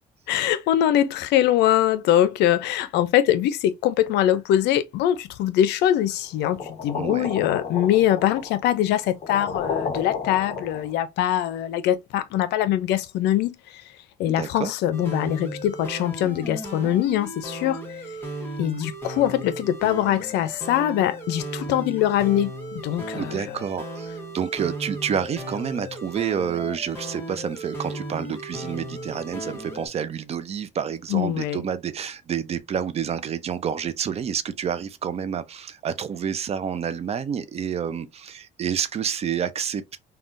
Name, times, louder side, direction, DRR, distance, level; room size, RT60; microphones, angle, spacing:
voice 1, 0.3-13.5 14.2-17.8 18.6-23.5 31.1-31.6, left 11 dB, 80° left, 0.5 m, -23 dB
sound 1, 6.4-11.0, left 5 dB, 40° left, 0.8 m, -32 dB
voice 2, 6.9-7.3 14.2-14.7 23.1-39.8, right 8 dB, 40° right, 0.4 m, -29 dB
sound 2, 14.9-29.9, right 1 dB, 15° left, 1.0 m, -35 dB
3.5 x 2.3 x 2.5 m
cardioid pair, 110°, 17 cm